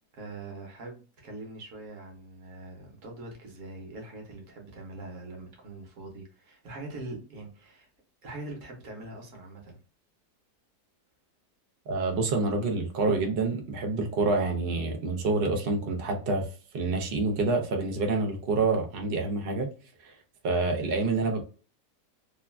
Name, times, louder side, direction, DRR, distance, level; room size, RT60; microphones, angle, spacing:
voice 1, 0.1-7.9 8.2-9.8, right 2 dB, 55° right, 1.2 m, -43 dB
voice 2, 11.9-16.5 16.7-19.7 20.0-20.1 20.4-21.4, right 3 dB, 80° right, 0.5 m, -27 dB
3.1 x 2.3 x 2.2 m
omnidirectional pair, 1.8 m